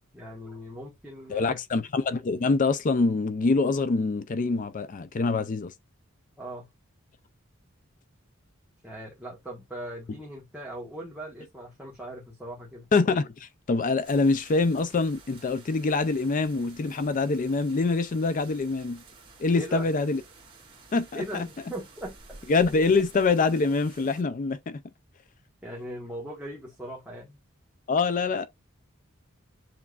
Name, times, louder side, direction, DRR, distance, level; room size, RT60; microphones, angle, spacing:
voice 1, 0.1-1.6 6.4-6.7 8.8-12.9 19.5-19.9 21.1-22.2 25.6-27.4, right 1 dB, 5° right, 1.3 m, -39 dB
voice 2, 1.3-5.7 12.9-19.0 19.4-20.2 20.9-21.5 22.5-24.8 27.9-28.5, left 3 dB, 40° left, 0.4 m, -25 dB
sound 1, 14.0-24.2, right 3 dB, 25° right, 1.5 m, -52 dB
7.1 x 3.1 x 2.4 m
head